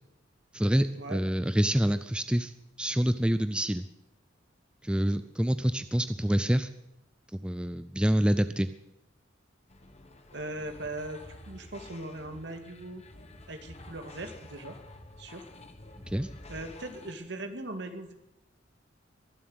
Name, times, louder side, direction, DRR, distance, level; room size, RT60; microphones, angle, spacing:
voice 1, 0.5-2.5 2.8-3.8 4.8-6.7 7.4-8.7 16.1-16.3, equal, 5° right, 11 dB, 0.5 m, -26 dB
sound 1, 9.7-17.1, left 1 dB, 35° left, 1.5 m, -49 dB
voice 2, 10.3-13.0 13.5-14.8 15.2-15.5 16.5-18.1, right 2 dB, 65° right, 6 dB, 2.2 m, -39 dB
23.0 x 7.7 x 8.0 m, 0.87 s
head